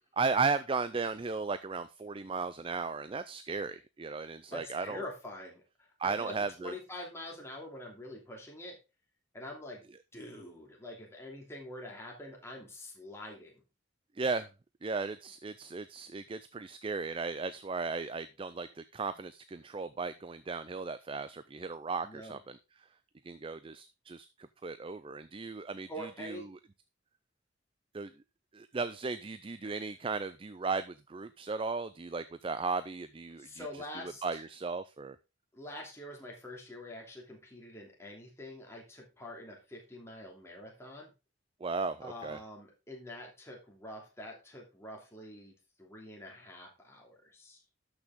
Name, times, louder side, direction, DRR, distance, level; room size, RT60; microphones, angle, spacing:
voice 1, 0.2-5.0 6.0-6.7 14.2-14.5 14.8-22.6 23.2-26.4 27.9-28.1 28.5-33.7 34.2-35.2 41.6-42.4, right 4 dB, 25° right, 13 dB, 0.4 m, -36 dB
voice 2, 4.5-8.8 9.3-9.8 10.1-13.6 22.0-22.4 25.9-26.5 29.6-29.8 33.4-34.4 35.5-41.1 42.0-47.6, left 1 dB, 15° left, -1 dB, 2.9 m, -45 dB
12.0 x 6.3 x 3.7 m, 0.27 s
head